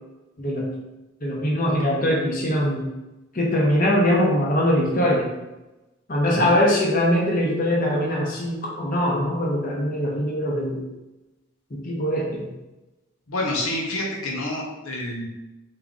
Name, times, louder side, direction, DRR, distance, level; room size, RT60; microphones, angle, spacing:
voice 1, 0.4-0.7 1.2-2.9 3.3-5.3 6.1-10.8 11.7-12.5, equal, 40° left, -3 dB, 0.8 m, -22 dB
voice 2, 6.2-6.6 13.3-15.3, left 1 dB, 85° left, -2 dB, 0.9 m, -28 dB
3.6 x 2.8 x 3.7 m, 1.0 s
head